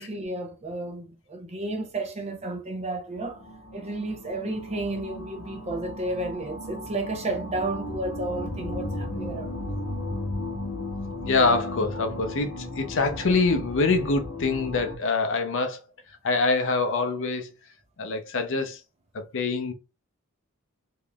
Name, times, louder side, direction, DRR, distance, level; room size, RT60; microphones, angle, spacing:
voice 1, 0.0-3.5 3.7-9.5, right 2 dB, 30° right, 0.7 m, -32 dB
sound 1, 3.2-15.0, left 1 dB, 75° left, 0.9 m, -35 dB
voice 2, 11.2-15.8 16.2-17.5 18.0-18.8 19.1-19.7, left 3 dB, 60° left, 0.6 m, -25 dB
3.6 x 3.1 x 2.3 m
head